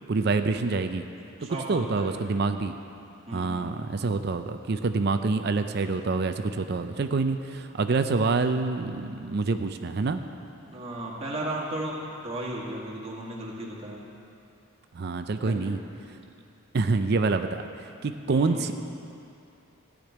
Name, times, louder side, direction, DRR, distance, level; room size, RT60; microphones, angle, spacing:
voice 1, 0.1-1.1 1.7-2.7 3.3-10.2 14.9-15.8 16.7-18.7, right 3 dB, 50° right, 8 dB, 0.4 m, -26 dB
voice 2, 1.4-2.2 3.3-3.8 10.6-14.1 15.2-15.7 18.3-18.6, right 1 dB, 30° right, -4 dB, 1.9 m, -35 dB
15.0 x 5.2 x 9.2 m, 2.6 s
head